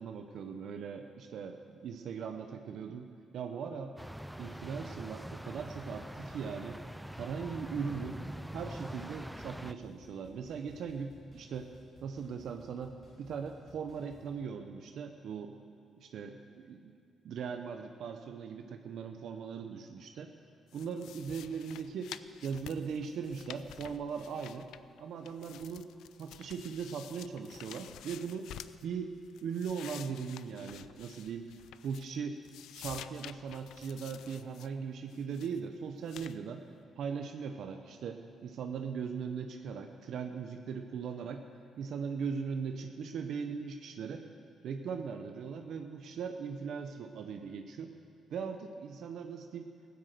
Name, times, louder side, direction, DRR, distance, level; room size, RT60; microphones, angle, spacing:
voice 1, 0.0-3.9 4.4-6.8 7.2-8.2 8.5-11.7 12.0-15.6 16.0-16.9 17.2-20.3 20.7-22.1 22.4-24.7 25.0-25.9 26.2-28.5 28.8-29.1 29.4-31.5 31.8-32.4 32.7-36.6 37.0-41.4 41.8-44.3 44.6-47.9 48.3-49.7, right 6 dB, 70° right, 5 dB, 0.9 m, -39 dB
sound 1, 4.0-9.7, equal, 5° right, 0.4 m, -44 dB
sound 2, 7.7-14.3, left 2 dB, 45° left, 3.5 m, -59 dB
sound 3, 20.7-25.0 25.2-28.8 29.2-32.2 32.4-34.7 35.1-35.6 36.1-36.4, left 11 dB, 85° left, 0.4 m, -50 dB
15.0 x 9.6 x 7.8 m, 2.4 s
cardioid pair, 90°, 0 cm